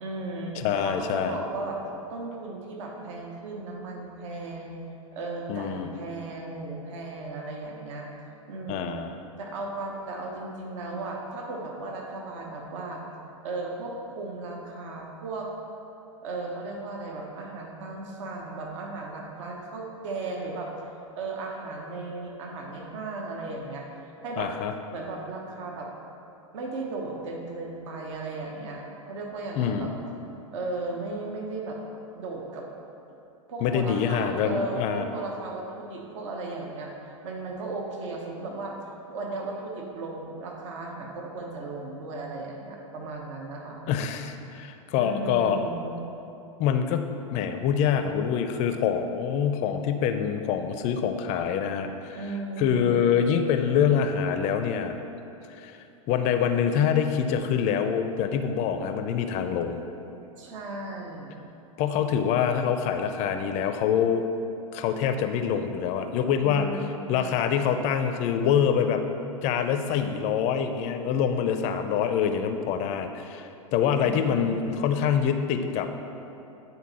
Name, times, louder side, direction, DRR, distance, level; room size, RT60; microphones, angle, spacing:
voice 1, 0.0-0.5 0.8-1.8 2.1-4.8 5.1-8.1 8.5-8.9 9.4-13.0 13.4-15.5 16.2-20.7 21.2-24.5 24.9-25.9 26.5-29.9 30.5-31.8 32.1-32.7 33.5-38.7 39.1-43.8 45.0-46.0 52.1-53.2 60.4-61.4 66.4-67.2 73.9-74.6, right 3 dB, 60° right, 0 dB, 1.1 m, -36 dB
voice 2, 0.5-1.4 5.5-5.9 8.7-9.2 24.4-24.7 29.6-29.9 33.6-35.1 43.9-45.6 46.6-52.2 52.6-55.0 55.5-55.8 56.1-59.8 61.8-64.3 64.7-66.8 67.1-69.0 69.4-75.9, left 8 dB, 40° left, 8 dB, 0.5 m, -25 dB
9.4 x 4.1 x 4.2 m, 2.8 s
hypercardioid pair, 100°, 18 cm